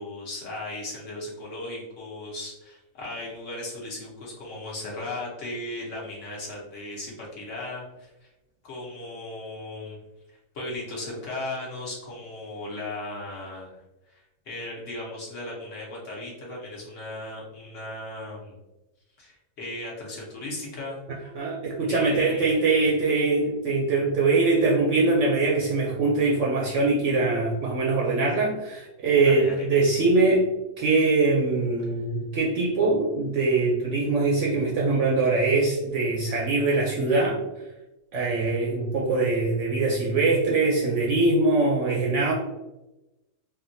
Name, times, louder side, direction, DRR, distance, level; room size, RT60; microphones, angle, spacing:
voice 1, 0.0-8.3 8.6-10.0 10.5-13.8 14.1-18.6 19.2-21.3 21.9-22.7 29.2-29.6, left 2 dB, 55° left, -4 dB, 1.2 m, -36 dB
voice 2, 21.3-30.5 30.8-37.4 38.1-42.3, right 3 dB, 65° right, -3 dB, 0.7 m, -22 dB
3.5 x 2.2 x 2.6 m, 0.98 s
omnidirectional pair, 1.6 m